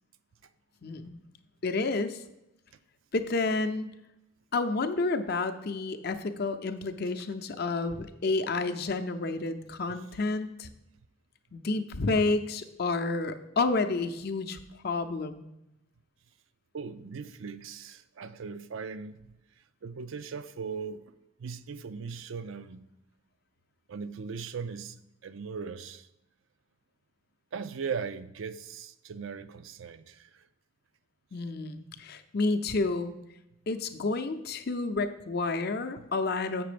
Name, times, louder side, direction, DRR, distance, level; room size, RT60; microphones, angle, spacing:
voice 1, 0.8-1.2 1.6-2.2 3.1-3.9 4.5-10.7 11.5-14.6 14.8-15.5 31.3-33.1 33.7-36.6, left 3 dB, 50° left, 0.6 m, -30 dB
voice 2, 16.7-19.3 19.8-21.1 21.4-22.9 23.9-26.1 27.5-30.4, right 5 dB, 70° right, 0.4 m, -39 dB
7.4 x 6.0 x 5.1 m
head